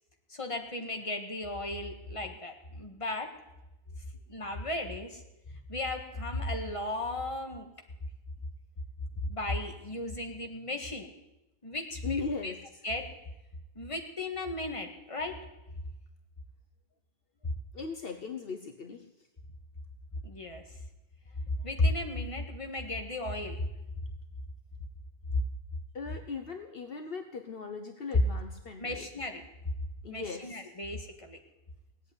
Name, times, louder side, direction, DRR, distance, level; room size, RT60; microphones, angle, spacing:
voice 1, 0.3-3.3 4.3-5.2 5.5-7.7 9.2-11.1 11.6-12.5 12.8-13.1 13.8-15.4 20.2-20.6 21.6-23.6 25.3-25.4 28.8-29.4 30.1-31.4, left 2 dB, 30° left, 4 dB, 1.8 m, -35 dB
voice 2, 12.0-12.6 17.7-19.1 25.9-29.1 30.0-30.6, left 4 dB, 60° left, 6 dB, 1.2 m, -38 dB
18.0 x 8.3 x 9.6 m, 0.95 s
omnidirectional pair, 1.1 m